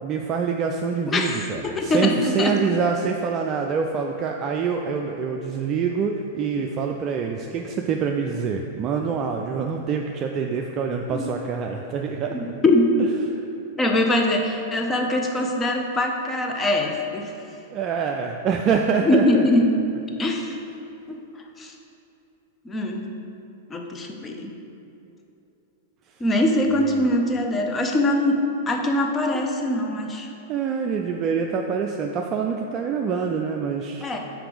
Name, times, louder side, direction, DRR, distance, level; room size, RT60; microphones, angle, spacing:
voice 1, 0.0-12.5 13.3-13.4 17.7-19.5 26.7-27.1 29.3-29.5 30.5-34.2, right 6 dB, 35° right, 2 dB, 0.4 m, -26 dB
voice 2, 1.1-2.1 2.4-2.5 11.1-11.3 12.3-12.9 13.8-17.3 19.0-19.7 20.2-20.5 21.1-21.2 21.6-21.7 22.7-23.1 23.7-24.5 26.2-28.4 28.7-30.3 34.0-34.2, left 1 dB, 20° left, 3 dB, 0.7 m, -22 dB
5.9 x 4.5 x 5.0 m, 2.8 s
figure-of-eight pair, 95°, 0 cm